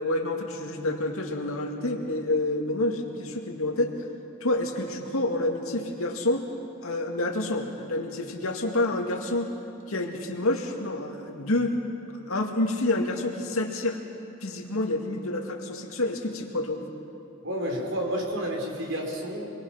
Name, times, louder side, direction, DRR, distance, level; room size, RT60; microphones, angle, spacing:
voice 1, 0.0-3.9 4.4-6.5 6.8-9.5 9.9-11.8 12.3-14.0 14.4-16.8, left 2 dB, 80° left, 2 dB, 2.3 m, -28 dB
voice 2, 17.4-19.5, equal, 60° right, 0 dB, 4.4 m, -30 dB
27.0 x 22.5 x 5.9 m, 2.7 s
head